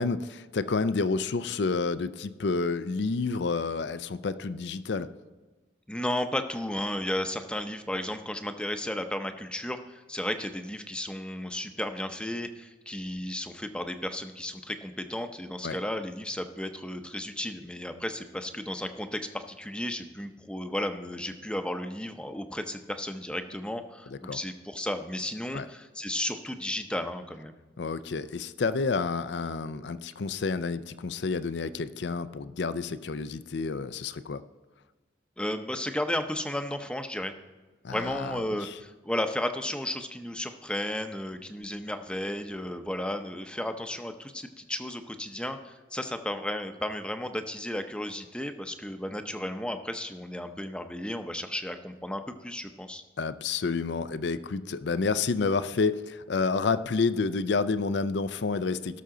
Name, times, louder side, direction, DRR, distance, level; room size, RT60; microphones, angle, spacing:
voice 1, 0.0-5.1 15.6-15.8 24.1-24.4 25.5-25.7 27.8-34.4 37.8-38.7 53.2-59.0, left 4 dB, 75° left, 14 dB, 0.5 m, -29 dB
voice 2, 5.9-27.5 35.4-37.3 37.9-53.0, left 1 dB, 5° left, 7 dB, 0.6 m, -34 dB
17.0 x 6.8 x 3.8 m, 1.3 s
head